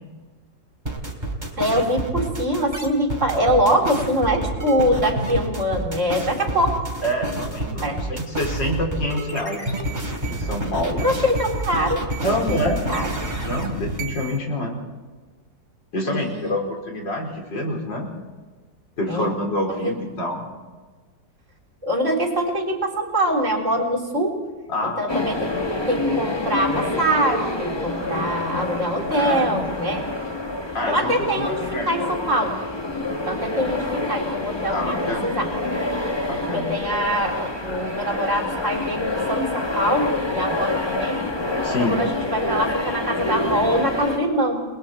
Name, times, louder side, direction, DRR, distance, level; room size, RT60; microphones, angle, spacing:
sound 1, 0.9-14.4, right 1 dB, 25° right, 3.7 m, -29 dB
voice 1, 1.6-6.8 7.8-8.0 10.8-13.1 16.0-16.5 19.1-19.3 19.7-19.9 21.8-24.4 24.8-25.5 25.9-30.1 30.9-32.6 33.2-35.5 36.5-41.2 41.8-44.6, equal, 40° right, 1 dB, 4.2 m, -24 dB
voice 2, 3.3-3.8 7.0-9.6 10.3-11.0 12.2-12.8 13.4-14.8 15.9-18.1 19.0-20.4 24.7-25.1 28.0-28.2 29.1-29.6 30.7-31.9 34.7-35.3 36.3-36.7 41.6-42.0, left 1 dB, 80° left, 1 dB, 5.5 m, -27 dB
sound 2, 25.1-44.2, left 2 dB, 15° left, 1.6 m, -27 dB
30.0 x 21.5 x 4.5 m, 1.3 s
omnidirectional pair, 1.9 m